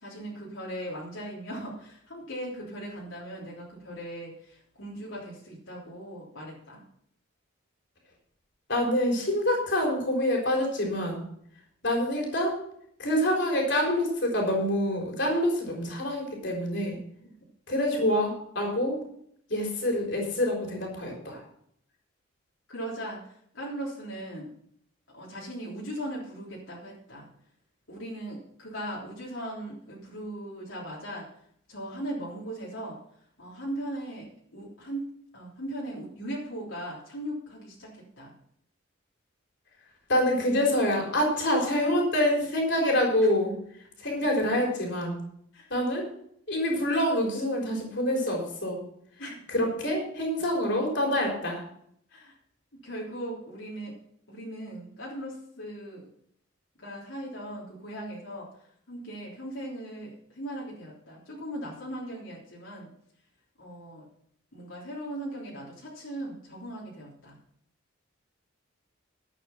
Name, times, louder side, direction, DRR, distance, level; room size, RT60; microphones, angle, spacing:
voice 1, 0.0-6.8 22.7-23.2 23.5-24.5 25.1-27.3 27.9-31.3 31.7-33.0 33.4-37.9 38.2-38.3 45.5-45.6 49.2-49.3 52.1-52.3 52.8-53.9 54.3-56.1 56.8-58.5 58.9-62.9 63.6-64.1 64.5-67.4, right 1 dB, 75° left, -5 dB, 3.5 m, -38 dB
voice 2, 8.7-11.2 11.8-12.6 13.0-17.0 17.7-19.0 19.5-21.4 40.1-43.5 44.0-45.2 45.7-46.1 46.5-48.8 49.5-51.6, left 1 dB, 55° left, 0 dB, 4.1 m, -26 dB
11.5 x 8.7 x 5.8 m, 0.68 s
head